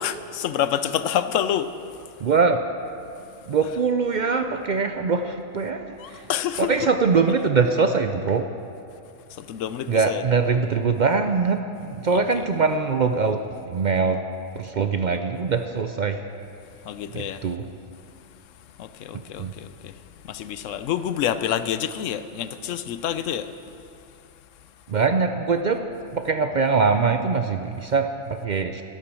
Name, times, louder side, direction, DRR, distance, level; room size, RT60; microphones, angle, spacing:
voice 1, 0.0-1.7 6.0-6.7 9.3-10.2 12.1-12.2 16.8-17.4 18.8-23.5, left 10 dB, 85° left, 12 dB, 1.0 m, -28 dB
voice 2, 2.2-2.6 3.5-6.3 6.6-8.5 9.9-14.2 14.5-16.2 17.1-17.7 19.1-19.5 24.9-28.8, right 4 dB, 55° right, 7 dB, 0.5 m, -23 dB
12.0 x 12.0 x 6.2 m, 2.6 s
omnidirectional pair, 1.3 m